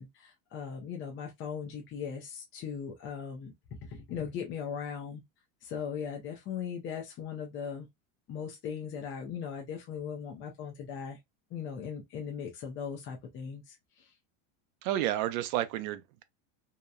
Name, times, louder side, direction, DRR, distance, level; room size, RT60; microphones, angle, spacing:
voice 1, 0.0-5.2 5.6-7.9 8.3-11.2 11.5-14.1, left 7 dB, 30° left, 0.4 m, -39 dB
voice 2, 14.8-16.2, right 13 dB, 75° right, 0.5 m, -31 dB
2.8 x 2.0 x 2.2 m
supercardioid pair, 135°, 41 cm